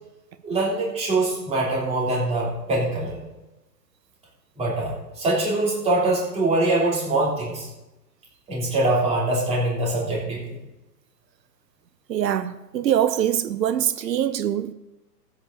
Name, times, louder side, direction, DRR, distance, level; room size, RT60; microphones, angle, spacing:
voice 1, 0.4-3.2 4.6-7.7 8.5-10.6, right 2 dB, 15° right, 3.3 m, -23 dB
voice 2, 12.1-14.7, right 10 dB, 85° right, 0.8 m, -23 dB
14.5 x 8.6 x 4.1 m
hypercardioid pair, 145°, 49 cm